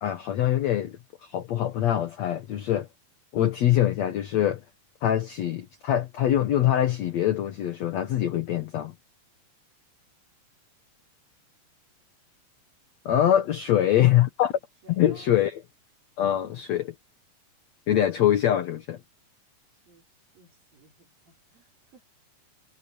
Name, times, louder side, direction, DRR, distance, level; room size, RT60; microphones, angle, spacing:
voice 1, 0.0-2.9 3.3-4.6 5.0-8.9 13.1-14.5 15.0-15.6 16.2-16.9 17.9-19.0, left 11 dB, 60° left, 2.2 m, -24 dB
voice 2, 13.7-14.1 14.8-15.5 19.7-22.0, right 3 dB, 85° right, 7.5 m, -55 dB
omnidirectional pair, 4.0 m